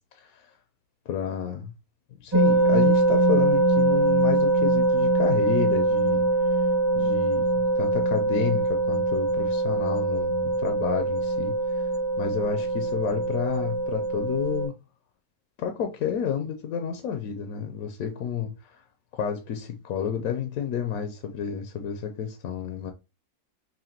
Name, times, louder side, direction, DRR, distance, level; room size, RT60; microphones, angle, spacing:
voice 1, 0.1-0.6 1.1-1.7 2.2-6.7 6.9-11.9 12.2-14.7 15.6-18.8 19.1-22.9, left 7 dB, 70° left, 1.0 m, -30 dB
sound 1, 2.3-14.7, right 2 dB, 20° right, 0.8 m, -23 dB
5.7 x 2.2 x 2.8 m
omnidirectional pair, 1.6 m